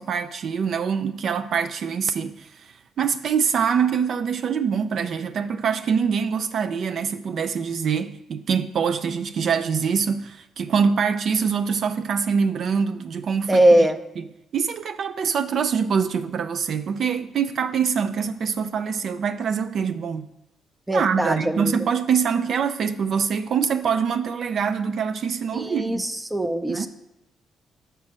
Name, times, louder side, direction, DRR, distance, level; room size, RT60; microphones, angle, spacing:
voice 1, 0.0-13.9 14.2-14.3 14.5-20.3 20.9-26.0 26.7-26.9, right 6 dB, 60° right, 0.3 m, -24 dB
voice 2, 13.5-14.0 20.9-21.7 25.5-26.9, right 1 dB, 10° right, 0.5 m, -20 dB
6.7 x 4.2 x 6.0 m
cardioid pair, 90°, 0 cm